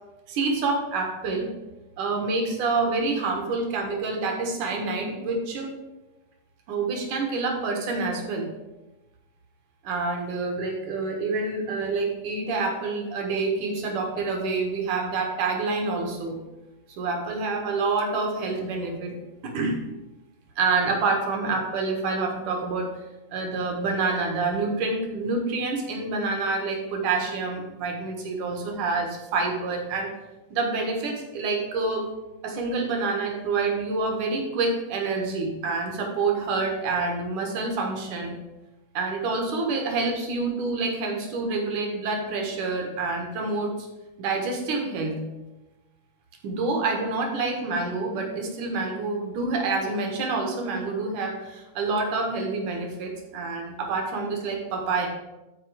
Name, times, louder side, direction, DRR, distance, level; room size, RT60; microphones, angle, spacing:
voice 1, 0.3-1.5 2.0-5.7 6.7-8.5 9.8-16.4 17.0-19.2 19.4-19.8 20.6-22.9 23.3-30.1 30.5-32.1 32.4-38.4 38.9-43.7 44.2-45.2 46.4-55.1, right 3 dB, 70° right, 2 dB, 2.9 m, -27 dB
12.5 x 4.4 x 5.0 m, 1.0 s
omnidirectional pair, 3.7 m